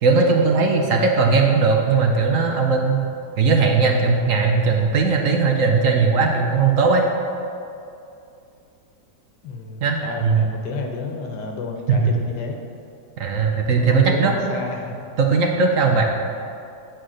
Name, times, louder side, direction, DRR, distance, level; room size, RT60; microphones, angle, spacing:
voice 1, 0.0-3.1 3.4-7.1 9.8-10.4 11.9-12.1 13.2-14.3 15.2-16.0, right 4 dB, 60° right, 2 dB, 1.0 m, -18 dB
voice 2, 9.4-12.6 13.8-15.1, left 4 dB, 85° left, 2 dB, 1.6 m, -31 dB
9.0 x 4.6 x 6.3 m, 2.6 s
omnidirectional pair, 1.8 m